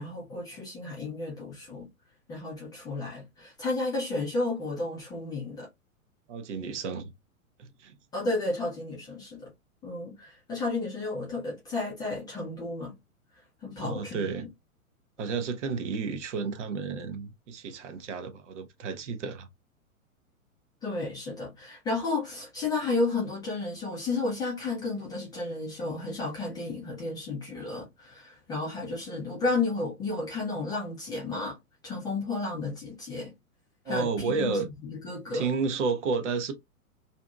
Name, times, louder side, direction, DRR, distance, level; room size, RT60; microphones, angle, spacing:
voice 1, 0.0-1.9 2.3-5.7 8.1-9.5 9.8-13.0 13.6-14.3 20.8-31.6 31.8-33.3 33.9-35.5, left 3 dB, 10° left, 0.5 m, -32 dB
voice 2, 6.3-7.1 7.6-7.9 13.8-14.5 15.2-19.5 33.9-34.7 35.3-36.5, right 5 dB, 55° right, 0.8 m, -31 dB
2.6 x 2.6 x 2.2 m
figure-of-eight pair, 105°, 43 cm